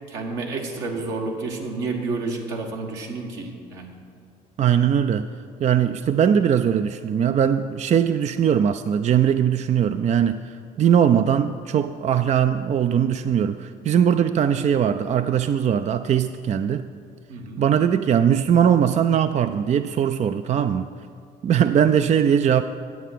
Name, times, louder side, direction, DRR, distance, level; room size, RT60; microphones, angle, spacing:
voice 1, 0.1-3.9 17.3-17.6, right 3 dB, 75° right, 0 dB, 1.6 m, -30 dB
voice 2, 4.6-5.3 5.6-16.9 17.6-20.9 21.4-22.6, right 8 dB, 40° right, 10 dB, 0.4 m, -20 dB
9.5 x 8.2 x 5.8 m, 2.3 s
hypercardioid pair, 60°, 19 cm